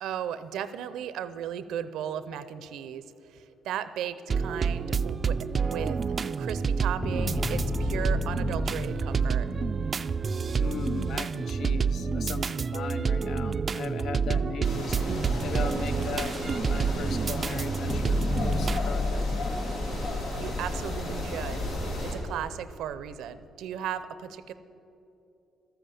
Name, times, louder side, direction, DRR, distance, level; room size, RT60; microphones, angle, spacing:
voice 1, 0.0-3.0 3.3-6.0 6.4-9.5 20.3-21.6 22.0-24.5, right 9 dB, 85° right, 14 dB, 0.6 m, -36 dB
sound 1, 4.3-18.8, right 5 dB, 40° right, 0.3 m, -28 dB
sound 2, 7.0-11.3 17.9-21.7, left 3 dB, 20° left, 0.5 m, -33 dB
voice 2, 10.6-15.0 15.4-16.3 16.6-18.2 18.4-19.2, left 7 dB, 70° left, 13 dB, 0.6 m, -38 dB
sound 3, 14.6-22.1, left 1 dB, 85° left, 2.8 m, -34 dB
13.0 x 8.0 x 8.4 m, 2.9 s
cardioid pair, 90°, 0 cm